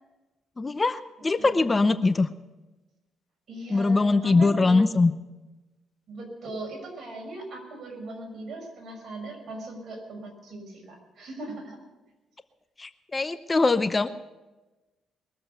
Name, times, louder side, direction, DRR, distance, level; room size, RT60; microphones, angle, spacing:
voice 1, 0.6-2.3 3.7-5.1 12.8-14.1, left 3 dB, 25° left, 12 dB, 0.7 m, -22 dB
voice 2, 1.4-1.8 3.5-4.8 6.1-11.8, right 2 dB, 55° right, 0 dB, 6.1 m, -39 dB
22.0 x 7.7 x 8.1 m, 1.1 s
cardioid pair, 90°, 0 cm